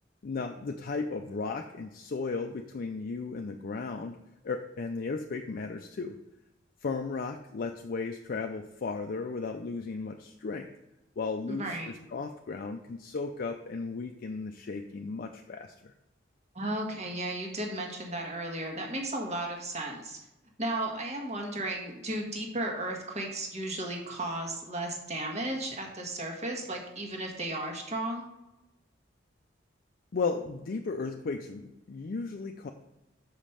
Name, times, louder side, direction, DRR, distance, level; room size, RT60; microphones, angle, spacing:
voice 1, 0.2-4.2 4.4-6.2 6.8-10.7 11.2-15.9 30.1-32.7, left 4 dB, 50° left, 5 dB, 0.4 m, -35 dB
voice 2, 11.5-11.9 16.5-20.2 20.6-28.2, right 1 dB, 35° right, 1 dB, 1.5 m, -34 dB
6.3 x 5.1 x 5.6 m, 0.95 s
head